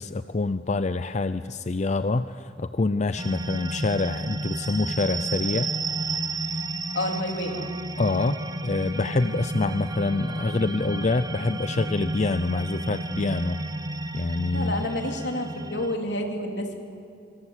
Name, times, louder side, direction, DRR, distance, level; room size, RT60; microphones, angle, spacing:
voice 1, 0.0-5.7 8.0-13.6 14.1-14.8, left 3 dB, 40° left, 11 dB, 0.6 m, -26 dB
sound 1, 3.2-16.0, right 2 dB, 20° right, 1.0 m, -32 dB
voice 2, 6.9-7.7 14.5-16.8, left 1 dB, 75° left, 3 dB, 3.4 m, -29 dB
26.0 x 25.5 x 8.2 m, 2.6 s
head